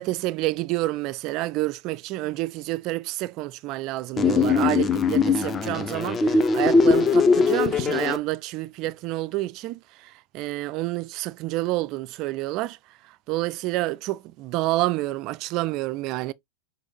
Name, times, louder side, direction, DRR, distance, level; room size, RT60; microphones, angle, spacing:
voice 1, 0.0-12.8 13.3-16.3, right 18 dB, 40° right, 0.3 m, -28 dB
sound 1, 4.2-8.2, left 4 dB, 20° left, 0.6 m, -20 dB
6.1 x 2.3 x 3.4 m
figure-of-eight pair, 90°, 0 cm